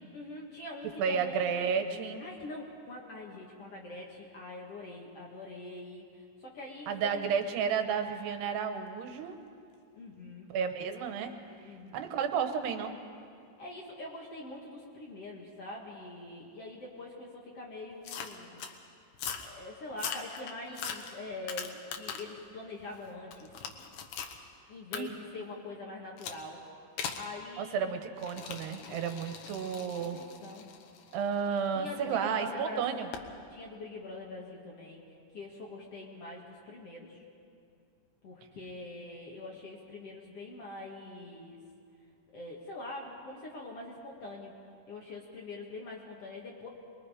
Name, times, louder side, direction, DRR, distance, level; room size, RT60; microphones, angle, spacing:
voice 1, 0.0-1.7 2.2-7.3 10.0-10.5 11.6-12.1 13.6-18.6 19.4-23.5 24.7-26.6 27.2-27.9 28.8-29.3 30.0-30.7 31.7-33.1 33.5-37.2 38.2-41.6 42.3-44.5 44.9-46.7, left 2 dB, 50° left, -2 dB, 2.0 m, -44 dB
voice 2, 1.0-2.2 6.9-9.4 10.5-11.3 11.9-12.9 24.9-25.2 27.6-30.2 31.1-33.1, right 6 dB, 85° right, 7 dB, 3.2 m, -32 dB
sound 1, 18.0-18.7 19.1-19.5 19.9-22.4 22.8-24.4 24.9-25.0 26.2-26.4 27.0-27.3 28.2-32.1 33.1-33.3, left 7 dB, 65° left, 2.2 m, -41 dB
24.5 x 22.0 x 5.0 m, 2.4 s
omnidirectional pair, 4.6 m